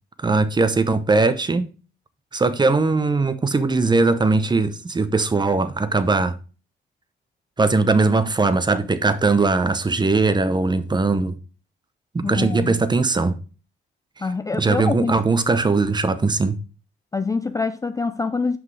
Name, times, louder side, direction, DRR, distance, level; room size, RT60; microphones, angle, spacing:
voice 1, 0.2-1.7 2.3-6.3 7.6-11.4 12.1-13.4 14.6-16.6, right 3 dB, 20° right, 0.8 m, -20 dB
voice 2, 12.2-12.8 14.2-15.1 17.1-18.6, left 4 dB, 15° left, 0.4 m, -25 dB
6.1 x 5.5 x 4.8 m
cardioid pair, 90°, 20 cm